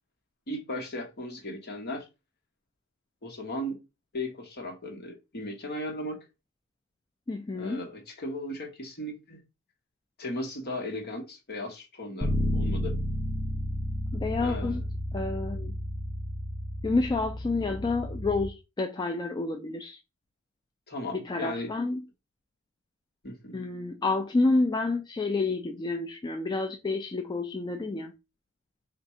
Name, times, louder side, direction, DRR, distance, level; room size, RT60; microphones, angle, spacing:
voice 1, 0.5-2.1 3.2-3.8 4.1-6.2 7.5-9.4 10.2-13.0 14.4-14.8 20.9-21.7 23.2-23.6, left 1 dB, 50° left, 1.3 m, -36 dB
voice 2, 7.3-7.8 14.1-14.8 15.1-15.8 16.8-20.0 21.1-22.0 23.5-28.1, left 3 dB, 20° left, 0.3 m, -29 dB
Bass guitar, 12.2-18.5, equal, ahead, 0.8 m, -32 dB
3.6 x 2.5 x 4.3 m
head